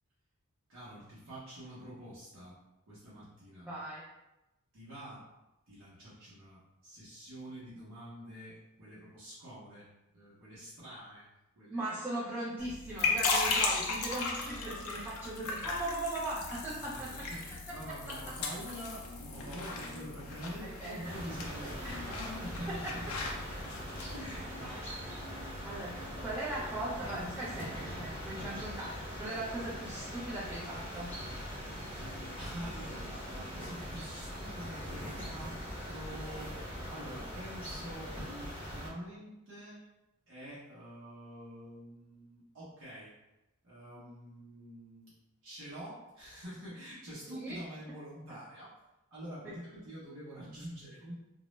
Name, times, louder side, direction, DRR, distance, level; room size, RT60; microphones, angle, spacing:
voice 1, 0.7-2.6 2.9-3.7 4.7-5.3 5.7-11.3 11.5-12.0 16.6-23.3 23.5-24.9 31.9-35.6 35.9-36.6 36.9-39.8 40.3-43.1 43.6-45.1 45.4-48.7 49.1-51.1, equal, 65° right, -9 dB, 0.7 m, -46 dB
voice 2, 3.7-4.0 11.7-17.3 17.9-18.3 20.6-21.2 21.6-22.0 22.8-22.9 25.7-31.1 47.3-47.6 49.4-49.5, right 1 dB, 5° right, -9 dB, 0.3 m, -39 dB
sound 1, 12.6-24.2, left 4 dB, 70° left, 0.4 m, -36 dB
sound 2, 21.0-38.9, equal, 10° left, 0.7 m, -42 dB
2.2 x 2.0 x 2.9 m, 0.97 s
head